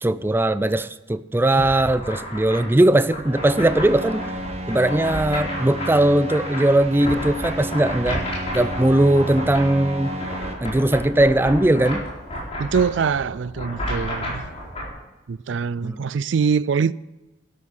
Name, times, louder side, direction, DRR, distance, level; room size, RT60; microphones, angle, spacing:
voice 1, 0.0-4.2 4.7-8.2 8.5-10.2 10.6-12.1 15.8-16.0, right 1 dB, 10° right, 0.4 m, -19 dB
sound 1, 1.5-14.9, equal, 35° left, 4.2 m, -32 dB
sound 2, 3.2-10.5, right 1 dB, 35° right, 1.5 m, -32 dB
voice 2, 12.6-14.5 15.3-16.9, right 6 dB, 80° right, 0.4 m, -23 dB
12.5 x 11.0 x 5.7 m
head